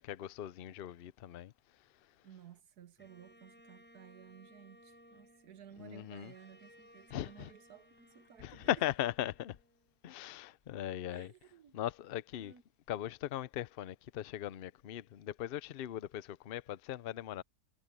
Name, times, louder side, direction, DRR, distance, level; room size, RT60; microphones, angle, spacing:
voice 1, 0.0-1.5 5.8-6.3 7.1-7.5 8.4-9.6 10.0-11.3 11.7-12.5 12.9-17.4, left 12 dB, 60° left, 0.6 m, -39 dB
voice 2, 2.2-8.8 11.1-11.7 12.4-12.6, right 9 dB, 85° right, 1.6 m, -56 dB
Bowed string instrument, 3.0-10.2, equal, 5° left, 7.3 m, -62 dB
omnidirectional pair, 1.6 m